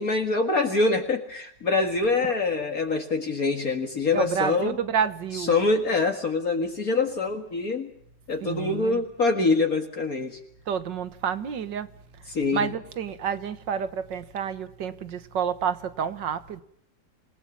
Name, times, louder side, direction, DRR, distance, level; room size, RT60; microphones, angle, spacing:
voice 1, 0.0-4.8 5.3-7.9 8.3-10.4 12.3-12.7, left 3 dB, 50° left, 2.3 m, -25 dB
voice 2, 4.1-5.5 8.4-9.0 10.7-11.9 12.2-16.6, right 7 dB, 70° right, 2.0 m, -29 dB
27.5 x 18.0 x 7.3 m
omnidirectional pair, 2.0 m